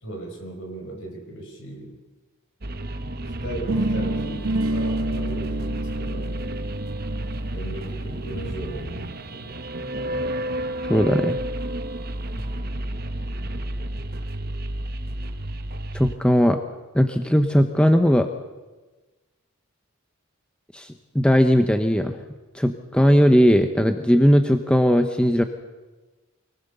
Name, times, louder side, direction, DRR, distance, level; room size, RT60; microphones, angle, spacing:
voice 1, 0.0-2.0 3.2-6.6 7.5-9.5 12.3-12.5, right 1 dB, 55° left, 2 dB, 5.1 m, -37 dB
sound 1, 2.6-16.1, right 1 dB, 45° right, 1.1 m, -31 dB
sound 2, 3.7-9.6, right 1 dB, 65° right, 1.2 m, -29 dB
voice 2, 10.8-11.4 15.9-16.6 16.9-18.3 20.7-22.2 22.5-25.4, equal, 5° left, 7 dB, 0.8 m, -18 dB
24.5 x 19.0 x 6.8 m, 1.2 s
head